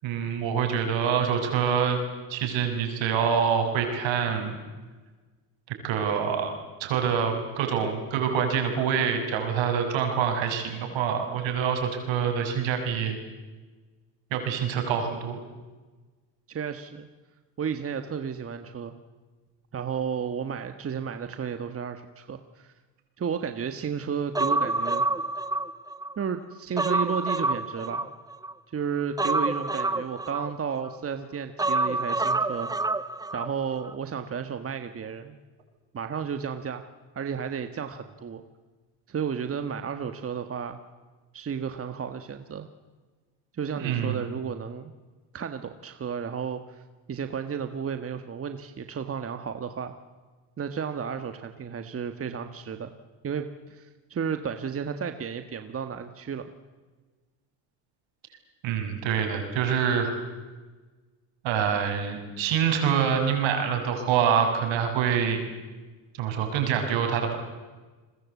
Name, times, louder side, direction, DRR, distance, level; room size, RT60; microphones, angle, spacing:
voice 1, 0.0-2.0 2.3-4.6 5.8-6.5 6.8-13.2 14.3-15.4 43.7-44.2 58.6-60.2 61.4-65.4 66.2-67.4, right 7 dB, 65° right, 5 dB, 6.7 m, -26 dB
voice 2, 16.5-17.1 17.6-18.9 19.7-22.7 23.2-25.0 26.2-28.1 28.7-32.7 33.3-35.4 35.9-36.9 37.1-38.4 39.1-40.8 41.3-42.7 43.5-44.9 45.3-46.8 47.1-49.9 50.6-52.9 53.2-56.5, right 7 dB, 30° right, 8 dB, 1.6 m, -33 dB
Human voice, 24.3-26.1 26.5-28.5 29.2-30.9 31.6-33.5 33.8-33.9, right 2 dB, 10° right, 0.9 m, -27 dB
30.0 x 21.5 x 8.4 m, 1.3 s
supercardioid pair, 110°, 48 cm